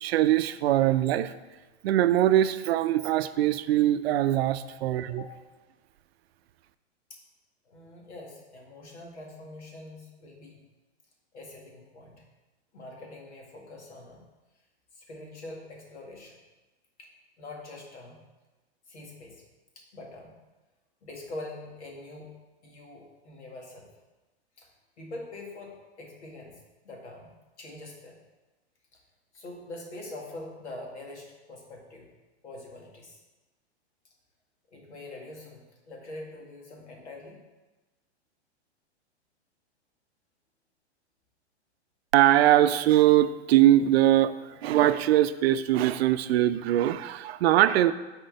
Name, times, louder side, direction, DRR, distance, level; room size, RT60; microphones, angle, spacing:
voice 1, 0.0-1.3 1.8-5.2 42.1-47.9, right 13 dB, 65° right, 12 dB, 0.5 m, -22 dB
voice 2, 7.7-10.6 11.3-12.2 12.7-14.2 14.9-16.4 17.0-17.1 17.4-18.2 18.9-19.4 19.8-20.3 21.0-22.3 22.6-23.9 24.6-24.7 25.0-28.2 28.9-29.0 29.3-32.1 32.4-33.2 34.7-37.4, left 2 dB, 85° left, 0 dB, 2.1 m, -44 dB
6.3 x 4.4 x 6.5 m, 1.2 s
hypercardioid pair, 125°, 34 cm